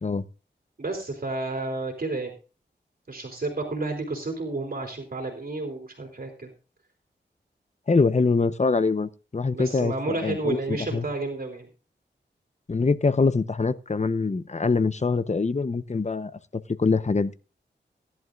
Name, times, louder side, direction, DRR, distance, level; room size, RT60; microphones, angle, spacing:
voice 1, 0.8-2.3 3.1-6.5 9.5-11.7, right 2 dB, 50° right, 3.3 m, -31 dB
voice 2, 7.9-11.1 12.7-17.3, left 4 dB, 40° left, 0.9 m, -24 dB
18.0 x 11.0 x 2.5 m
wide cardioid pair, 60°, 19 cm